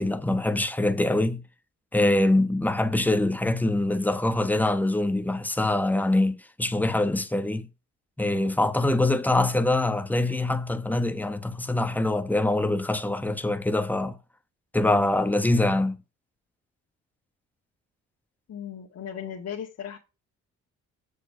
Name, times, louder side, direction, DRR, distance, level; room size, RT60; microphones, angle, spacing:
voice 1, 0.0-1.4 1.9-7.7 8.2-14.2 14.7-16.0, left 2 dB, 5° left, 1.1 m, -24 dB
voice 2, 18.5-20.0, left 8 dB, 60° left, 1.8 m, -36 dB
7.6 x 6.6 x 4.9 m
cardioid pair, 90°, 30 cm